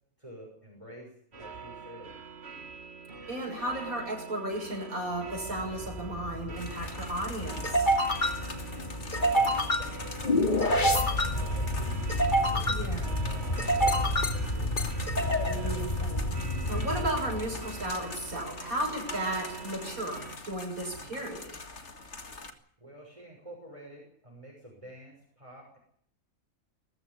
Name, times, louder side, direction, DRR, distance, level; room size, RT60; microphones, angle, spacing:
voice 1, 0.2-2.1 9.1-14.8 22.8-25.8, right 1 dB, 20° right, -1 dB, 6.2 m, -48 dB
sound 1, 1.3-20.4, right 5 dB, 50° right, 2.0 m, -44 dB
voice 2, 3.3-7.9 12.7-13.2 15.4-16.3 16.7-21.5, right 1 dB, 85° right, 0 dB, 7.1 m, -34 dB
sound 2, 5.3-18.1, equal, 35° left, 2.4 m, -28 dB
sound 3, 6.6-22.5, left 3 dB, 55° left, 2.3 m, -44 dB
21.5 x 14.5 x 9.9 m, 0.63 s
omnidirectional pair, 1.5 m